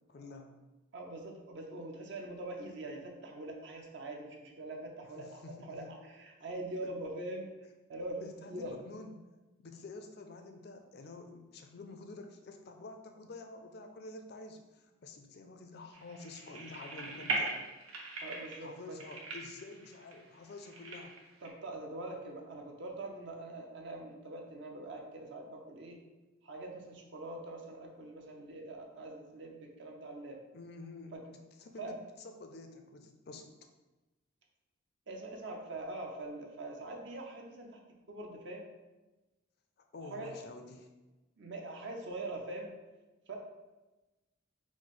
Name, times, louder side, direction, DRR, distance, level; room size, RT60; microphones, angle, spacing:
voice 1, 0.1-0.6 5.2-5.9 6.8-7.0 8.2-9.2 9.6-17.7 18.6-21.1 30.5-33.5 39.9-40.9, left 3 dB, 50° left, 5 dB, 0.4 m, -49 dB
voice 2, 0.9-7.5 7.9-8.8 18.2-19.0 21.4-26.0 26.4-30.4 31.1-31.2 31.8-31.9 35.1-37.8 38.1-38.7 40.1-40.3 41.4-42.7 43.3-43.4, right 2 dB, 55° right, 1 dB, 0.6 m, -43 dB
sound 1, 15.9-21.5, right 2 dB, 85° right, 0.9 m, -40 dB
4.7 x 2.0 x 4.1 m, 1.1 s
head